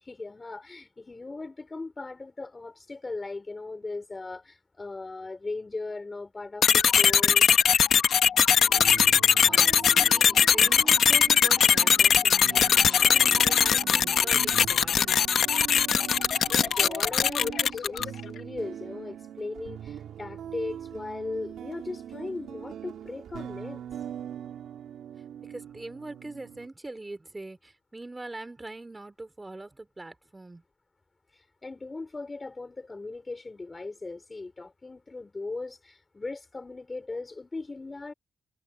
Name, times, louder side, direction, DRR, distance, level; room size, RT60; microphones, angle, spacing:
voice 1, 0.0-7.5 16.1-23.8 31.6-38.1, left 3 dB, 25° left, 4.9 m, -38 dB
sound 1, 6.6-18.2, left 8 dB, 65° left, 1.3 m, -21 dB
sound 2, 8.5-26.7, right 9 dB, 90° right, 2.5 m, -42 dB
voice 2, 9.4-15.2 25.4-30.6, right 2 dB, 15° right, 3.9 m, -42 dB
cardioid pair, 125°, 0 cm